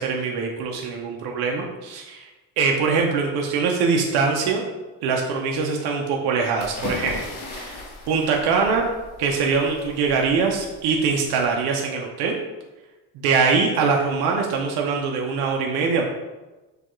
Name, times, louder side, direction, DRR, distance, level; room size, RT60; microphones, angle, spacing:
voice 1, 0.0-2.3 2.6-4.6 5.0-8.8 9.2-12.4 13.1-16.0, right 5 dB, 75° right, 0 dB, 0.7 m, -23 dB
sound 1, 6.6-11.4, left 2 dB, 85° left, 1.2 m, -37 dB
6.7 x 2.4 x 3.0 m, 1.1 s
cardioid pair, 135°, 38 cm